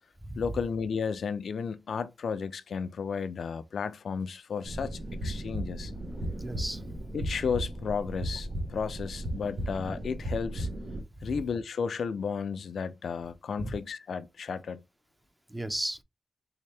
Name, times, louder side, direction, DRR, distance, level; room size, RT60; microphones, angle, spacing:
voice 1, 0.4-5.9 7.1-10.7 11.2-14.8, left 6 dB, 85° left, 0.3 m, -33 dB
sound 1, 4.6-11.0, right 1 dB, 70° right, 0.9 m, -35 dB
voice 2, 6.4-6.8 11.2-11.4 13.6-13.7 15.5-16.0, right 1 dB, 15° right, 0.6 m, -35 dB
3.3 x 2.7 x 3.3 m
cardioid pair, 55°, 0 cm